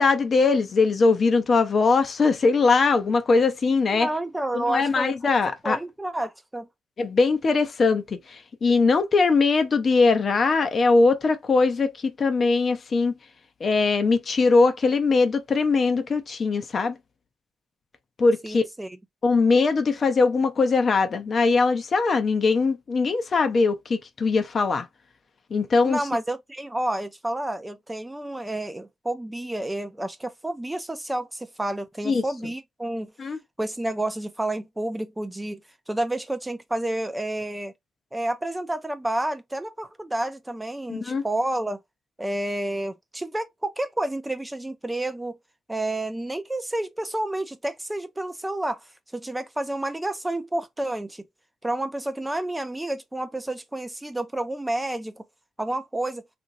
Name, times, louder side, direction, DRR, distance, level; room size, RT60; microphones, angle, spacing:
voice 1, 0.0-4.1 4.5-5.8 7.0-11.9 12.2-13.1 13.6-17.0 18.2-18.6 19.2-24.9 25.5-26.0 32.0-32.2 33.2-33.4 40.9-41.2, left 4 dB, 40° left, 0.5 m, -21 dB
voice 2, 3.9-5.4 5.6-6.7 18.4-19.0 25.9-33.1 33.6-35.6 35.9-37.7 38.1-41.8 42.2-45.4 45.7-48.8 49.1-51.2 51.6-55.2 55.6-56.2, right 1 dB, 10° right, 0.4 m, -30 dB
2.8 x 2.5 x 2.6 m
cardioid pair, 90°, 0 cm